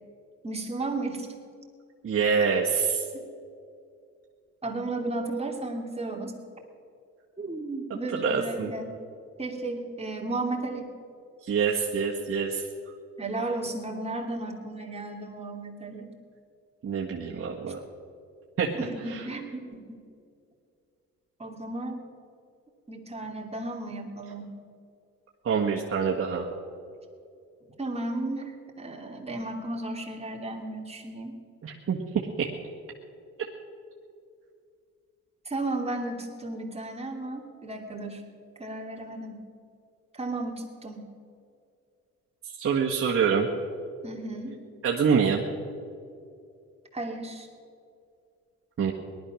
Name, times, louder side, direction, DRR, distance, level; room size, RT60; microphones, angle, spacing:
voice 1, 0.4-1.3 3.1-3.2 4.6-6.3 7.4-9.0 9.4-10.9 13.2-16.1 18.8-20.0 21.4-22.0 22.9-24.5 27.8-31.4 35.4-38.2 38.6-39.4 40.1-41.1 44.0-44.6 46.9-47.5, right 2 dB, 20° right, 0 dB, 2.8 m, -34 dB
voice 2, 2.0-3.0 8.2-8.7 11.5-12.7 16.8-17.8 18.6-18.7 19.1-19.2 25.4-26.5 31.6-32.5 42.6-43.5 44.8-45.4 48.8-48.9, right 6 dB, 45° right, -3 dB, 1.6 m, -26 dB
18.5 x 12.0 x 6.4 m, 2.4 s
cardioid pair, 90°, 30 cm